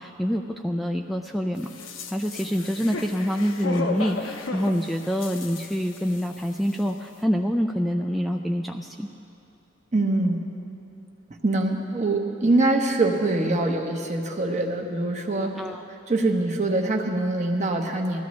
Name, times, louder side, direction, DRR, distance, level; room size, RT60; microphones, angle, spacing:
voice 1, 0.0-1.7 2.1-9.1 15.6-15.9, equal, ahead, 2 dB, 0.3 m, -26 dB
sound 1, 1.6-6.4 6.7-6.8, left 3 dB, 80° left, 0.9 m, -35 dB
voice 2, 9.9-10.4 11.4-15.5 16.1-18.2, right 2 dB, 40° right, 2 dB, 1.1 m, -24 dB
20.0 x 14.0 x 3.2 m, 2.7 s
head